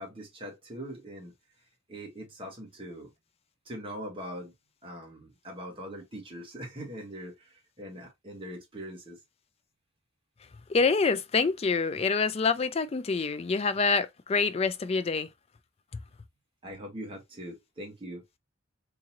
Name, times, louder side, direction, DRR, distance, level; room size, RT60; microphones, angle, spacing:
voice 1, 0.0-1.3 1.9-3.1 3.7-4.5 4.8-7.5 7.8-9.2 16.6-18.2, equal, 25° right, 1.4 m, -41 dB
voice 2, 10.7-15.3, left 4 dB, 30° left, 0.4 m, -26 dB
3.8 x 2.7 x 2.9 m
head